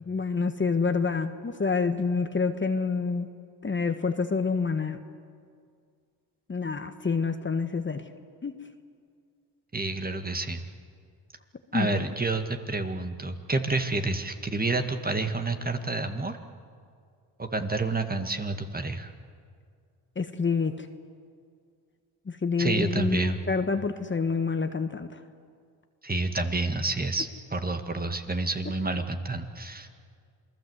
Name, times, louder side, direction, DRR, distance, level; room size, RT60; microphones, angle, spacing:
voice 1, 0.0-3.3 3.6-5.0 6.5-8.0 8.4-8.6 11.7-12.0 20.1-20.9 22.3-25.2, left 4 dB, 25° left, 7 dB, 1.5 m, -27 dB
voice 2, 9.7-10.6 11.7-16.4 17.4-19.1 22.6-23.4 26.0-29.9, right 3 dB, 20° right, 6 dB, 2.0 m, -29 dB
28.0 x 19.5 x 8.1 m, 2.2 s
supercardioid pair, 70°, 43 cm